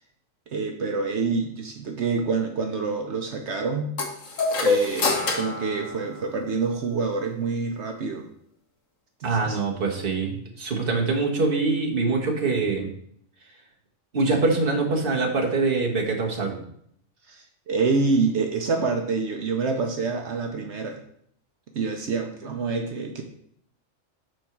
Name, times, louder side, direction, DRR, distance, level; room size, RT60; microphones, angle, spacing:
voice 1, 0.5-3.9 4.6-8.3 9.2-9.6 17.3-21.0 21.7-23.2, right 4 dB, 65° right, 4 dB, 1.0 m, -27 dB
sound 1, 4.0-6.7, left 3 dB, 85° left, 1.5 m, -26 dB
voice 2, 9.2-12.9 14.1-16.6, right 3 dB, 45° right, 0 dB, 1.5 m, -24 dB
6.2 x 4.4 x 5.9 m, 0.68 s
omnidirectional pair, 1.3 m